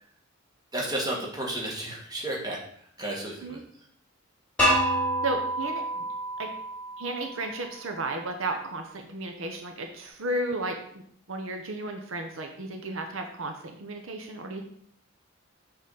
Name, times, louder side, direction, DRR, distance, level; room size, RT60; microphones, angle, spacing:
voice 1, 0.7-2.6 3.0-3.6, right 1 dB, 20° right, -2 dB, 1.6 m, -32 dB
sound 1, 4.6-7.5, equal, 5° left, 2.5 m, -27 dB
voice 2, 5.2-6.1 6.4-6.5 7.0-10.8 11.3-14.6, right 2 dB, 70° right, 4 dB, 0.8 m, -33 dB
6.4 x 4.0 x 5.5 m, 0.64 s
head